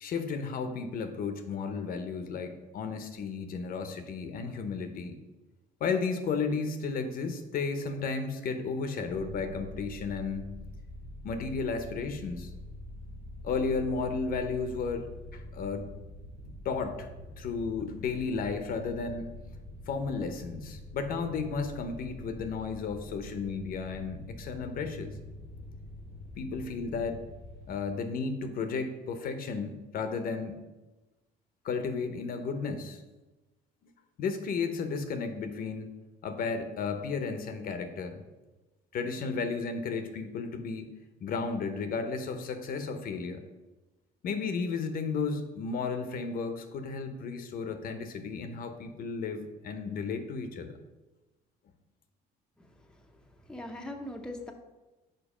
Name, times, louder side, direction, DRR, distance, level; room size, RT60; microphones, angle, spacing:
voice 1, 0.0-5.1 5.8-10.5 11.2-12.5 13.4-15.9 16.6-17.1 17.4-19.3 19.9-25.1 26.4-27.2 27.7-30.6 31.6-33.0 34.2-36.0 36.2-38.2 38.9-40.9 41.2-43.4 44.2-50.7, left 4 dB, 60° left, 8 dB, 0.8 m, -33 dB
sound 1, 9.1-27.8, left 1 dB, 90° right, 2.2 m, -45 dB
voice 2, 52.6-53.2 53.5-54.5, left 1 dB, 5° left, 3 dB, 0.6 m, -41 dB
5.2 x 4.7 x 4.9 m, 1.1 s
cardioid pair, 110°, 17 cm